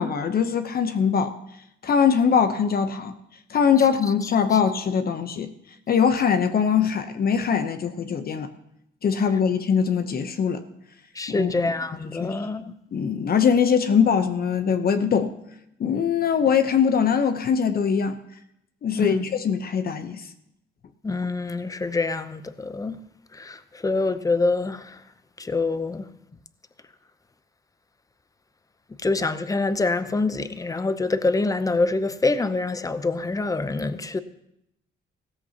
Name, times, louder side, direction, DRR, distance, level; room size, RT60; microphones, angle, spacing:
voice 1, 0.0-1.3 1.8-3.1 3.5-5.5 5.9-8.5 9.0-10.6 11.3-11.5 12.2-12.5 12.9-15.3 15.8-18.2 18.8-20.2, left 7 dB, 50° left, 0.9 m, -22 dB
voice 2, 11.1-12.7 18.9-19.2 21.0-23.0 23.3-25.0 25.4-26.1 29.0-34.2, left 3 dB, 15° left, 0.7 m, -25 dB
16.0 x 14.0 x 2.9 m
cardioid pair, 90°, 20 cm